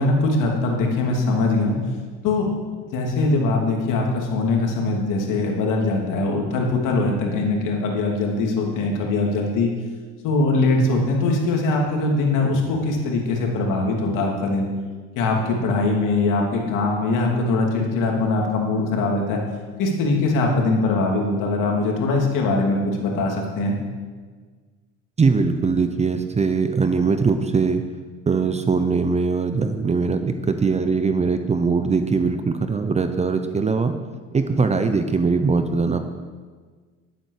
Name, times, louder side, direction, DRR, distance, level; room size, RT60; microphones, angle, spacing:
voice 1, 0.0-1.8 2.2-2.5 2.9-9.7 10.2-14.7 15.2-19.4 19.8-23.8, left 2 dB, 60° left, 0 dB, 2.9 m, -22 dB
voice 2, 25.2-27.8 28.3-33.9 34.3-36.0, right 4 dB, 20° right, 8 dB, 0.8 m, -21 dB
11.5 x 8.9 x 6.6 m, 1.5 s
supercardioid pair, 100°, 35 cm